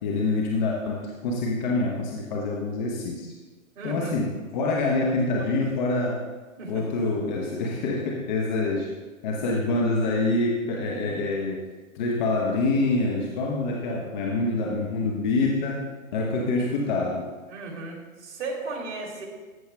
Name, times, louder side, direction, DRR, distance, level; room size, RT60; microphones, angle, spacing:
voice 1, 0.0-3.3 3.8-6.2 6.7-8.9 9.2-11.7 11.9-17.3, left 2 dB, 35° left, 0 dB, 0.9 m, -26 dB
voice 2, 3.8-4.1 6.6-6.8 17.5-19.2, right 3 dB, 55° right, -1 dB, 2.5 m, -35 dB
14.0 x 7.9 x 2.2 m, 1.3 s
hypercardioid pair, 140°, 42 cm